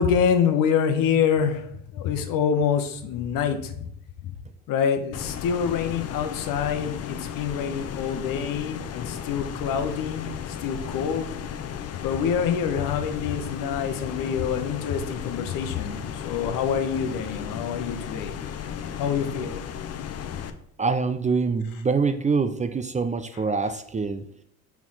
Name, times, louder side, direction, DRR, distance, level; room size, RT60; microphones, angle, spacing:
voice 1, 0.0-3.9 4.2-4.3 4.7-11.3 12.0-18.4 19.0-19.6 20.4-20.5, left 7 dB, 60° left, 7 dB, 1.1 m, -26 dB
sound 1, 5.1-20.5, left 8 dB, 40° left, 0.7 m, -35 dB
voice 2, 20.8-24.3, right 4 dB, 20° right, 9 dB, 0.5 m, -25 dB
4.6 x 4.3 x 5.5 m, 0.69 s
hypercardioid pair, 65°, 38 cm